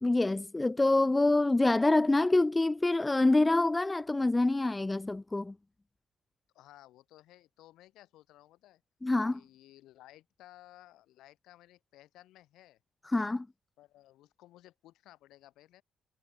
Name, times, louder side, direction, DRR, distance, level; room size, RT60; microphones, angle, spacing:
voice 1, 0.0-5.5 9.0-9.4 13.1-13.5, left 2 dB, 15° left, 0.4 m, -26 dB
voice 2, 6.5-8.8 9.3-12.8 13.8-15.8, left 15 dB, 90° left, 4.4 m, -57 dB
cardioid pair, 90°, 0 cm